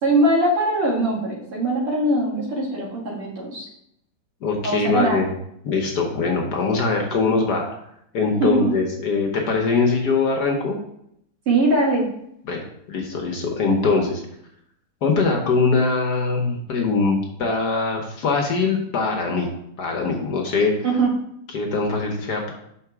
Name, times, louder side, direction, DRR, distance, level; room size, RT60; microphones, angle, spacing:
voice 1, 0.0-3.7 4.6-5.2 8.3-8.7 11.5-12.0 20.8-21.1, right 1 dB, 85° right, -5 dB, 3.0 m, -21 dB
voice 2, 4.4-5.3 5.6-7.6 8.1-10.8 12.4-14.2 15.0-19.5 19.8-20.7 21.5-22.5, left 4 dB, 60° left, 1 dB, 1.3 m, -22 dB
5.7 x 4.0 x 5.9 m, 0.74 s
omnidirectional pair, 2.4 m